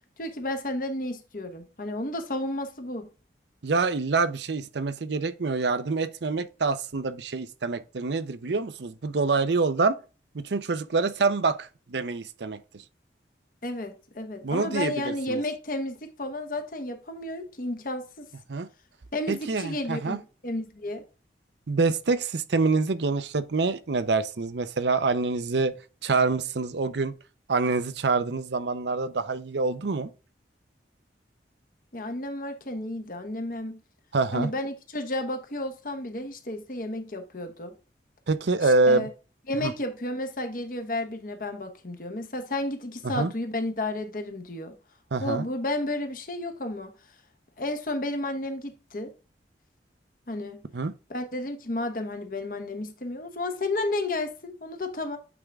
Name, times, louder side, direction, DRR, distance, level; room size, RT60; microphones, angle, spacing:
voice 1, 0.2-3.1 13.6-18.3 19.1-21.0 31.9-33.8 34.3-37.8 38.6-39.1 39.5-44.8 45.2-46.9 47.6-49.1 50.3-50.6 51.1-55.2, left 1 dB, 50° left, 1.0 m, -32 dB
voice 2, 3.6-10.0 10.3-12.8 14.4-15.4 18.5-18.7 19.3-20.2 21.7-25.7 26.0-27.1 27.5-30.1 34.1-34.5 38.3-39.1 39.6-39.7 43.0-43.3 45.1-45.5 50.7-50.9, right 3 dB, 80° right, 0.6 m, -26 dB
8.4 x 3.7 x 3.4 m
head